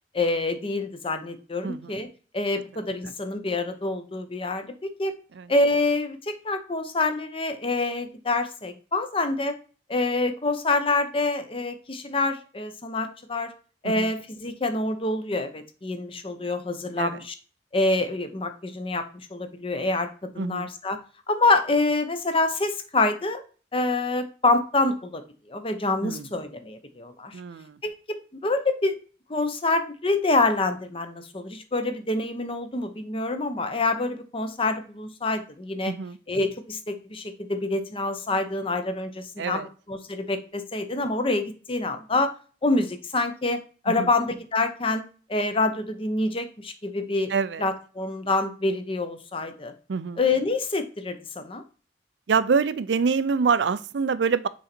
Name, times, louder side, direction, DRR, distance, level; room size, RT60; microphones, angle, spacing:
voice 1, 0.1-2.1 2.3-5.1 5.5-9.6 9.9-13.5 13.8-17.3 17.7-19.0 19.3-21.0 21.3-23.4 23.7-25.2 25.5-27.3 27.8-29.0 29.3-35.9 36.3-39.6 39.9-42.3 42.6-47.3 47.6-49.7 50.2-51.6, left 2 dB, 30° left, 9 dB, 0.8 m, -26 dB
voice 2, 20.4-20.7 26.0-26.3 27.3-27.8 35.9-36.2 39.4-39.7 43.9-44.1 47.3-47.6 49.9-50.2 52.3-54.5, right 5 dB, 80° right, 14 dB, 0.5 m, -26 dB
6.3 x 4.0 x 4.3 m, 0.37 s
head